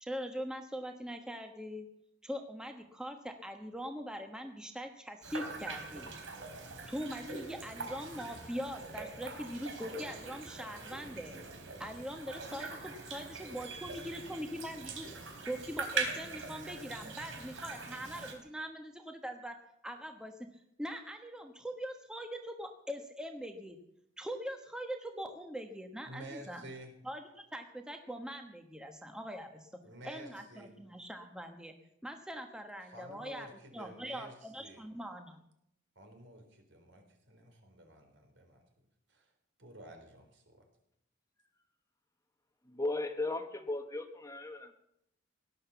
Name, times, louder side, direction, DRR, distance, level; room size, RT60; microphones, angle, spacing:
voice 1, 0.0-1.9 2.2-6.1 6.9-11.3 11.8-15.1 15.5-19.6 19.8-20.5 20.8-23.8 24.2-26.6 27.0-29.7 30.0-31.7 32.0-33.5 33.7-35.4, equal, 5° right, 5 dB, 1.2 m, -42 dB
sound 1, 5.2-18.3, right 4 dB, 90° right, 3.9 m, -42 dB
voice 2, 13.6-14.8 26.1-27.0 29.8-30.7 32.9-34.8 36.0-38.6 39.1-39.3 39.6-40.6, right 2 dB, 70° right, 4 dB, 3.9 m, -51 dB
voice 3, 42.7-44.7, left 2 dB, 15° left, 7 dB, 1.1 m, -36 dB
17.5 x 11.5 x 7.0 m, 0.76 s
head